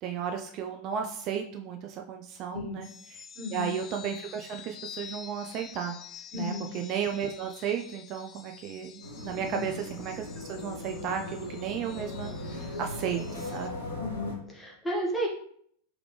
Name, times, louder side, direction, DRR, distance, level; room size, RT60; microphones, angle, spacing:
voice 1, 0.0-3.2 3.5-6.0 6.3-13.7, right 8 dB, 40° right, 3 dB, 0.4 m, -34 dB
sound 1, 2.8-13.7, left 8 dB, 30° left, 0.4 m, -48 dB
voice 2, 3.3-3.7 6.3-6.7 9.4-9.7 14.0-15.3, left 1 dB, 10° left, -3 dB, 1.3 m, -33 dB
sound 2, 9.0-14.3, left 2 dB, 90° left, 1.3 m, -38 dB
3.5 x 3.5 x 3.1 m, 0.63 s
figure-of-eight pair, 90°, 0 cm